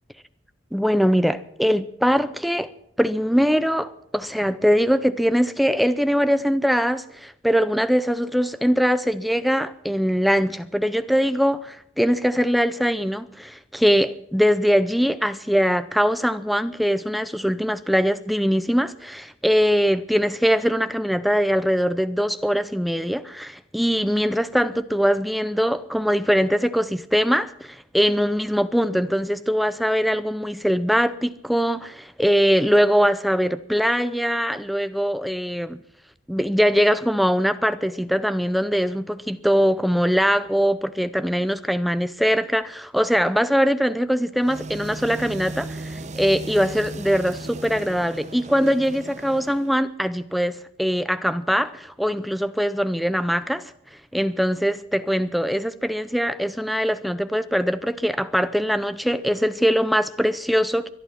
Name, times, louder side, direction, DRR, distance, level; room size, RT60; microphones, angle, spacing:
voice 1, 0.7-2.7 3.0-35.8 36.3-53.7 54.1-60.9, equal, ahead, 0.6 m, -22 dB
sound 1, 44.4-49.8, right 2 dB, 35° right, 1.0 m, -36 dB
22.5 x 11.0 x 5.8 m
head